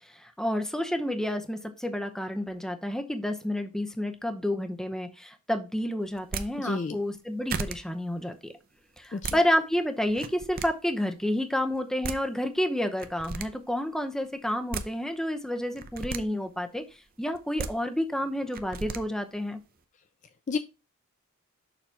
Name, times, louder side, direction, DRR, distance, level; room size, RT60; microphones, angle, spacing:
voice 1, 0.2-8.5 9.0-16.8 17.2-19.6, left 1 dB, ahead, 6 dB, 0.7 m, -30 dB
sound 1, 6.2-6.5 7.1-7.2 7.5-7.8 9.0-9.4 10.1-10.7 11.7-11.8 12.0-12.2 13.0-13.5 14.5-14.9 15.7-16.2 17.3-17.7 18.5-19.0, right 4 dB, 40° right, 0.6 m, -34 dB
voice 2, 6.6-7.0 9.1-9.4 20.5-20.6, left 4 dB, 35° left, 10 dB, 0.4 m, -30 dB
6.8 x 3.0 x 5.8 m, 0.28 s
head